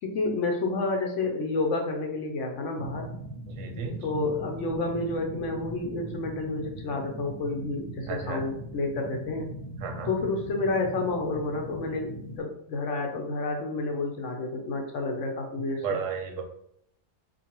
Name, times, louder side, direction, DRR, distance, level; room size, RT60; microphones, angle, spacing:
voice 1, 0.0-3.1 4.0-9.5 10.1-16.0, left 3 dB, 65° left, 2 dB, 0.8 m, -30 dB
sound 1, 2.7-12.4, right 1 dB, 20° left, 0.4 m, -40 dB
voice 2, 3.5-4.0 8.1-8.4 9.8-10.1 15.8-16.4, right 5 dB, 65° right, 4 dB, 0.9 m, -33 dB
4.0 x 2.5 x 2.9 m, 0.72 s
omnidirectional pair, 1.6 m